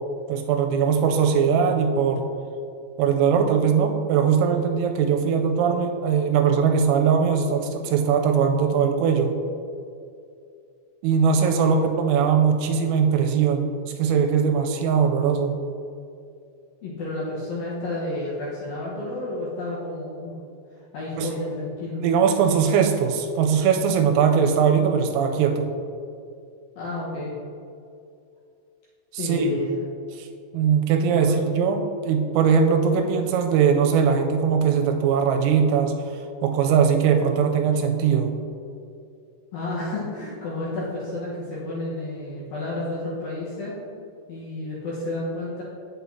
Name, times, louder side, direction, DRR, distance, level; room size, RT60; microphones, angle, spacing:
voice 1, 0.3-2.2 3.0-9.3 11.0-15.6 21.2-21.3 22.0-25.7 29.1-29.5 30.2-30.3 30.5-35.9 36.4-38.3, right 6 dB, 90° right, 4 dB, 3.3 m, -20 dB
voice 2, 16.8-20.3 20.9-22.0 26.8-27.4 29.2-29.7 31.1-31.4 39.5-43.8 44.3-45.6, left 2 dB, 80° left, -8 dB, 2.1 m, -31 dB
8.2 x 8.0 x 2.7 m, 2.5 s
omnidirectional pair, 5.9 m